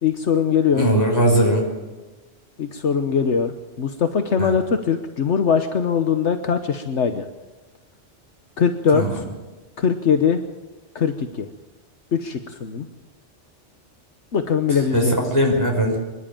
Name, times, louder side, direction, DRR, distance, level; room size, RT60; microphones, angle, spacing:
voice 1, 0.0-0.9 2.6-7.3 8.6-9.2 9.8-10.4 10.9-11.5 12.1-12.9 14.3-15.1, left 6 dB, 70° left, 7 dB, 1.3 m, -21 dB
voice 2, 0.7-1.7 4.4-4.5 8.9-9.2 14.9-15.1 15.3-16.0, right 1 dB, 15° left, 0 dB, 5.4 m, -19 dB
25.0 x 11.5 x 8.9 m, 1.2 s
omnidirectional pair, 1.2 m